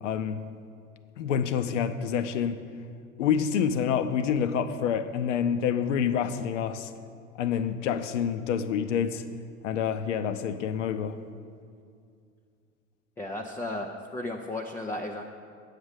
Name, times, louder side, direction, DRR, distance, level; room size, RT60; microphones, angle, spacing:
voice 1, 0.0-0.4 1.2-2.6 3.2-6.9 7.4-9.2 9.6-11.2, left 8 dB, 65° left, 11 dB, 0.7 m, -27 dB
voice 2, 13.2-15.2, left 1 dB, 5° left, 1 dB, 0.3 m, -34 dB
8.7 x 6.6 x 8.0 m, 2.3 s
figure-of-eight pair, 75°, 40 cm